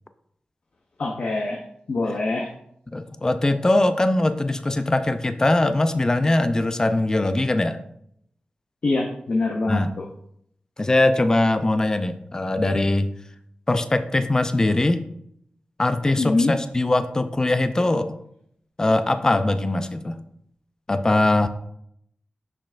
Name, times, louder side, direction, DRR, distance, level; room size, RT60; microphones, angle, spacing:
voice 1, 1.0-1.6 1.9-2.5 8.8-10.1 16.2-16.5, left 2 dB, 60° left, 1 dB, 0.7 m, -24 dB
voice 2, 2.9-7.8 9.7-9.9 10.8-13.1 13.7-15.0 15.8-18.1 18.8-20.2 20.9-21.5, left 2 dB, 25° left, 10 dB, 0.4 m, -21 dB
6.7 x 5.7 x 2.5 m, 0.71 s
wide cardioid pair, 90°, 3 cm